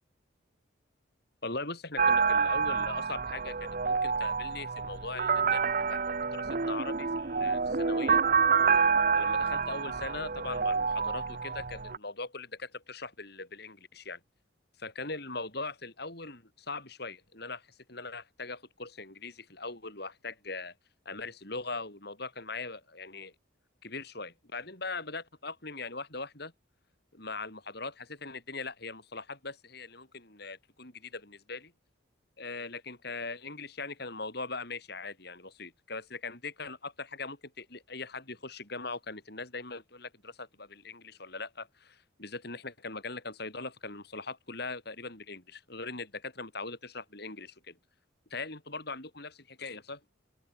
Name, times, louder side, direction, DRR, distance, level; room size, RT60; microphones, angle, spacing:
voice 1, 1.4-8.2 9.2-14.2 14.8-20.7 21.0-23.3 23.8-26.5 27.1-31.7 32.4-47.8 48.3-49.3 49.6-50.0, left 3 dB, 55° left, 6.2 m, -40 dB
sound 1, 2.0-12.0, right 5 dB, 45° right, 0.9 m, -28 dB
open air
head